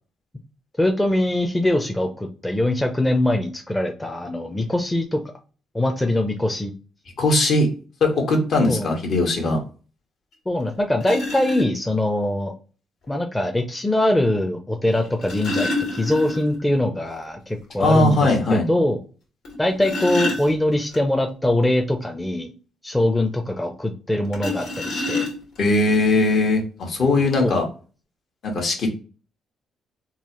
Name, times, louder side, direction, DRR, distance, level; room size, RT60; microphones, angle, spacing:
voice 1, 0.8-5.2 5.7-6.7 8.7-8.9 10.5-12.5 13.1-19.0 19.6-22.5 22.8-25.3 27.4-27.6, left 1 dB, 10° left, 3 dB, 0.5 m, -22 dB
voice 2, 7.2-7.7 8.0-9.6 17.8-18.6 25.6-27.6 28.4-28.9, left 2 dB, 60° left, 2 dB, 1.3 m, -19 dB
sound 1, 10.3-10.4 11.0-11.6 13.0-13.1 14.9-16.7 17.0-17.1 17.5-17.6 18.1-18.2 19.4-21.0 24.3-25.7 26.5-26.6 27.0-27.2, left 2 dB, 75° left, 1.7 m, -28 dB
3.9 x 2.5 x 2.9 m, 0.36 s
cardioid pair, 90°, 0 cm